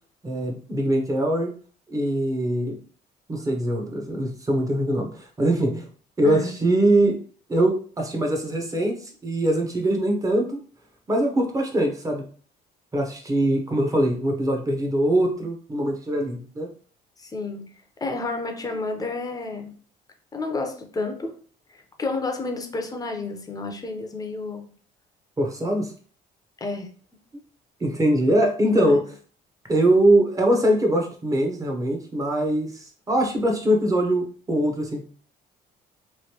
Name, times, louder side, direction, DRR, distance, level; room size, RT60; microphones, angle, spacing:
voice 1, 0.2-1.5 1.9-2.8 3.3-5.9 6.2-7.2 7.5-10.6 11.1-12.2 12.9-16.7 25.4-25.9 27.8-29.0 29.7-35.0, right 1 dB, 20° right, 2 dB, 0.8 m, -22 dB
voice 2, 17.2-17.7 18.0-19.7 20.3-21.3 21.7-24.7 26.6-26.9 28.7-29.0, left 3 dB, 20° left, 4 dB, 0.6 m, -30 dB
3.1 x 2.6 x 2.9 m, 0.43 s
cardioid pair, 110°, 17 cm